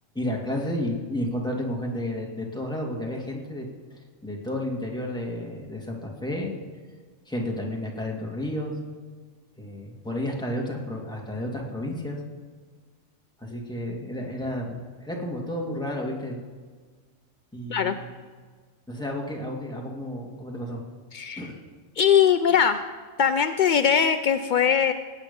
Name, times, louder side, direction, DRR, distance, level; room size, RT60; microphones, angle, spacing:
voice 1, 0.2-6.5 7.3-8.8 9.6-12.2 13.4-16.4 17.5-18.1 18.9-20.8 21.4-21.6, left 1 dB, 5° left, -2 dB, 1.9 m, -32 dB
voice 2, 21.1-21.5 22.0-22.8 23.2-24.9, left 8 dB, 70° left, 9 dB, 0.4 m, -21 dB
19.0 x 8.7 x 5.3 m, 1.5 s
omnidirectional pair, 1.4 m